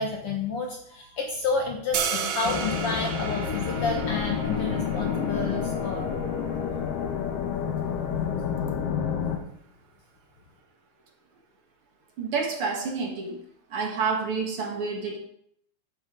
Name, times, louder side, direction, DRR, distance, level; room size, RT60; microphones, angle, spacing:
voice 1, 0.0-6.1, left 3 dB, 60° left, 2 dB, 1.6 m, -30 dB
sound 1, 1.9-8.0, right 7 dB, 65° right, 1.9 m, -35 dB
sound 2, 2.4-9.4, left 7 dB, 80° left, 2.7 m, -29 dB
voice 2, 12.2-13.4 13.7-15.2, right 5 dB, 50° right, 1 dB, 2.1 m, -29 dB
12.0 x 9.0 x 3.8 m, 0.69 s
omnidirectional pair, 3.9 m